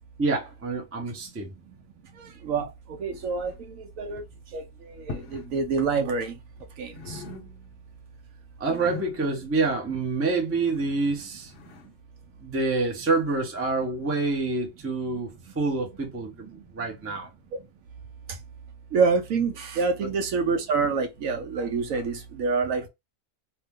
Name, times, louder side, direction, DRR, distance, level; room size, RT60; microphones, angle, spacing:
voice 1, 0.2-1.5 8.6-11.5 12.4-17.3, right 3 dB, 15° right, 0.4 m, -27 dB
voice 2, 3.0-4.2 4.5-4.6 5.1-6.3 6.8-7.2 18.9-22.9, right 4 dB, 70° right, 0.9 m, -26 dB
sound 1, 3.1-4.4 5.0-5.5 5.8-6.7 6.9-7.9 8.2-11.9, left 4 dB, 60° left, 0.9 m, -42 dB
2.8 x 2.0 x 3.4 m
omnidirectional pair, 1.6 m